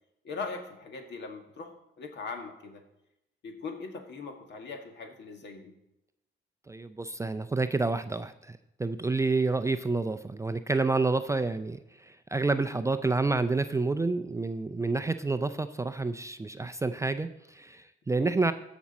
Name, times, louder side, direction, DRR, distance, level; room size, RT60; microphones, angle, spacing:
voice 1, 0.2-2.8 3.4-5.7 18.2-18.3, left 4 dB, 60° left, 4 dB, 1.8 m, -40 dB
voice 2, 6.7-18.5, right 3 dB, 15° right, 9 dB, 0.4 m, -29 dB
14.5 x 6.1 x 4.2 m, 0.85 s
cardioid pair, 90°, 20 cm